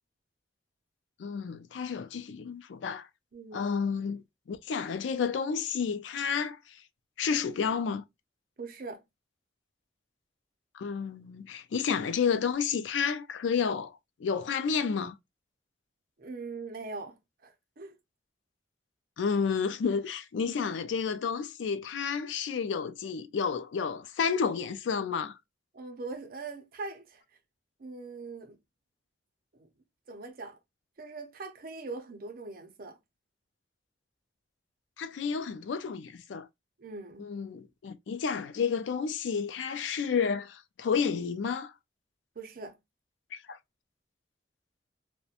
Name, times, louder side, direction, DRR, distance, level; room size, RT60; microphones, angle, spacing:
voice 1, 1.2-3.1 3.5-6.8 7.2-8.0 10.7-15.2 19.2-25.4 35.0-36.5 37.2-41.7 43.3-43.6, left 6 dB, 85° left, 0.4 m, -31 dB
voice 2, 3.3-3.7 8.6-9.0 16.2-18.0 20.5-20.6 25.7-27.2 27.8-28.6 29.5-29.7 30.1-30.6 31.0-33.0 36.8-37.3 42.4-42.8, right 3 dB, 50° right, 0.5 m, -41 dB
2.4 x 2.1 x 2.7 m
head